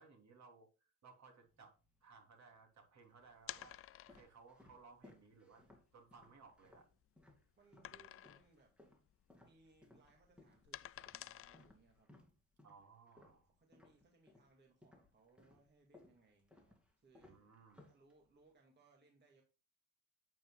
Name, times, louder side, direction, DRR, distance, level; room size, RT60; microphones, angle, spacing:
voice 1, 0.0-1.7 2.0-3.8 4.1-6.9 7.9-8.0 12.6-13.5 17.2-17.8, right 4 dB, 50° right, 3.2 m, -62 dB
sound 1, 1.4-2.2 2.9-8.0 8.2-14.5 14.8-18.5, left 2 dB, 5° right, 2.6 m, -65 dB
sound 2, 3.4-4.4 5.1-5.2 5.6-5.7 6.2-7.2 7.8-8.6 8.9-9.1 9.4-12.0, left 12 dB, 40° left, 0.4 m, -52 dB
voice 2, 7.6-8.8 9.4-12.1 13.6-17.4 17.9-19.4, right 3 dB, 30° right, 2.2 m, -69 dB
9.1 x 8.7 x 2.3 m
cardioid pair, 125°, 35 cm